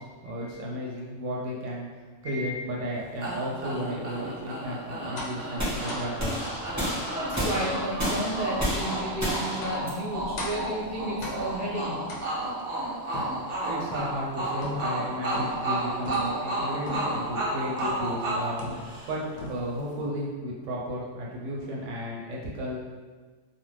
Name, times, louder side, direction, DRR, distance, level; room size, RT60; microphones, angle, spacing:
voice 1, 0.0-1.9 2.2-7.1 13.6-22.8, equal, 80° right, -3 dB, 0.9 m, -34 dB
sound 1, 3.2-19.4, right 2 dB, 50° right, 0.6 m, -33 dB
sound 2, 5.2-5.5 5.9-6.1 6.7-6.9 7.3-7.6 8.0-8.3 8.9-9.1 9.6-9.9 10.4-10.7 11.2-11.6 12.1-12.6 13.1-14.2 14.6-15.0 15.3-15.7 16.0-16.4 16.9-17.2 17.8-18.1 18.6-19.1 19.4-19.9, left 1 dB, 75° left, 0.3 m, -38 dB
sound 3, 5.6-11.7, equal, 15° right, 0.9 m, -32 dB
voice 2, 7.1-12.0, equal, 15° left, -13 dB, 1.1 m, -32 dB
2.4 x 2.2 x 3.1 m, 1.4 s
omnidirectional pair, 1.3 m